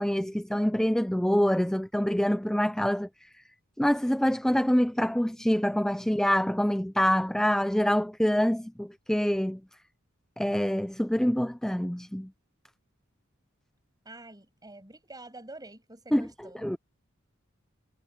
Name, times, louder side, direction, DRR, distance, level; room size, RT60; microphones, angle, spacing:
voice 1, 0.0-3.3 3.8-9.6 10.4-12.3 16.1-16.3 16.6-16.8, equal, 5° left, 0.4 m, -26 dB
voice 2, 14.0-16.8, right 2 dB, 20° right, 7.3 m, -47 dB
head